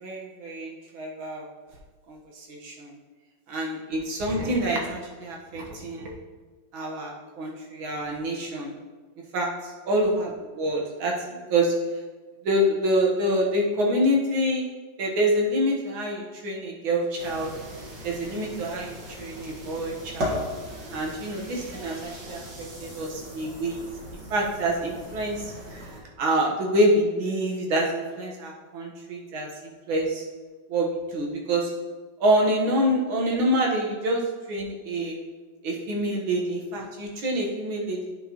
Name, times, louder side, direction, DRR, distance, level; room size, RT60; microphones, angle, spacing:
voice 1, 0.0-1.5 2.1-2.9 3.5-6.1 6.7-8.7 9.3-9.5 9.9-11.7 12.4-14.7 15.0-17.5 18.0-20.4 20.9-22.4 22.8-23.8 24.3-25.4 25.7-25.9 26.2-30.2 30.7-31.7 32.2-34.2 34.5-35.2 35.6-38.1, right 1 dB, 85° right, -1 dB, 2.1 m, -26 dB
sound 1, 17.2-26.0, equal, 60° right, 2.3 m, -37 dB
10.0 x 6.1 x 3.0 m, 1.4 s
omnidirectional pair, 2.2 m